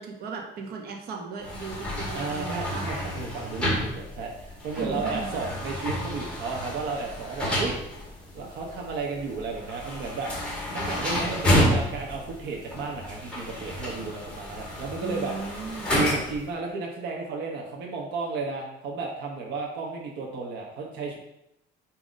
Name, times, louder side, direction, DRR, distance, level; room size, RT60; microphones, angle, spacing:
voice 1, 0.0-2.9 4.7-5.3 15.0-16.0, right 4 dB, 60° right, 1 dB, 1.3 m, -36 dB
sound 1, 1.4-16.5, equal, 5° left, 1.7 m, -30 dB
voice 2, 2.1-7.8 8.3-10.3 10.7-15.4 15.9-21.2, right 4 dB, 75° right, 0 dB, 1.1 m, -33 dB
7.7 x 3.0 x 5.1 m, 0.83 s
cardioid pair, 160°, 18 cm